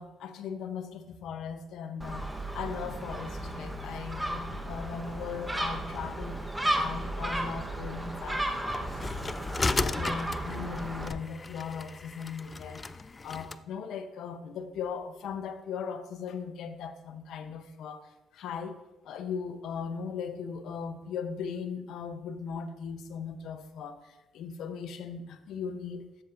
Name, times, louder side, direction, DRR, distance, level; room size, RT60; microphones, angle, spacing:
voice 1, 0.0-6.4 6.7-9.4 9.8-26.2, left 6 dB, 80° left, 9 dB, 0.7 m, -38 dB
Gull seagull, 2.0-11.1, right 1 dB, 10° right, 1.0 m, -34 dB
sound 1, 8.7-13.6, left 3 dB, 30° left, 0.3 m, -35 dB
13.0 x 7.0 x 2.5 m, 1.0 s
cardioid pair, 90°, 0 cm